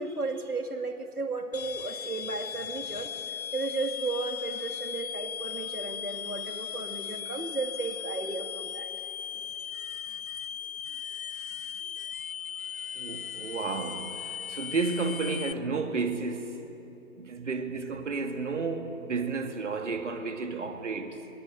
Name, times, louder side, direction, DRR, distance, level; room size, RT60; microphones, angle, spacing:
voice 1, 0.0-3.1 3.5-8.9 17.5-17.6, right 3 dB, 85° right, 2.4 m, -34 dB
sound 1, 1.5-15.5, left 8 dB, 70° left, 0.6 m, -37 dB
voice 2, 13.0-16.6 17.2-21.3, right 4 dB, 55° right, 2.3 m, -32 dB
22.0 x 22.0 x 9.0 m
figure-of-eight pair, 140°, 44 cm